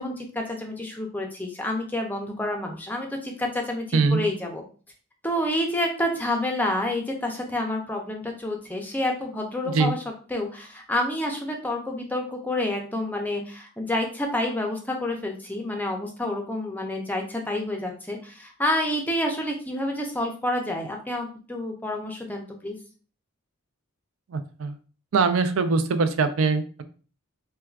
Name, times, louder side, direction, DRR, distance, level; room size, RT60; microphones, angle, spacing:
voice 1, 0.0-4.6 5.2-10.0 10.3-22.8, left 1 dB, 10° left, 2 dB, 0.5 m, -28 dB
voice 2, 3.9-4.2 9.7-9.9 24.3-24.8 25.1-26.8, right 4 dB, 70° right, 10 dB, 0.4 m, -22 dB
4.4 x 2.2 x 2.4 m, 0.39 s
head